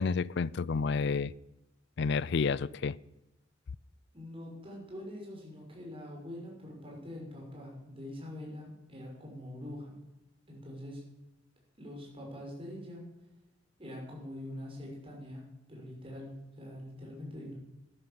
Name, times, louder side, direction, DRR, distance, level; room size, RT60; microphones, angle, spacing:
voice 1, 0.0-1.3 2.0-3.0, left 5 dB, 60° left, 0.4 m, -30 dB
voice 2, 4.1-9.9 10.5-11.0 11.8-13.0 13.8-15.4 15.7-17.5, left 1 dB, 30° right, 6.1 m, -44 dB
13.0 x 10.5 x 7.5 m
head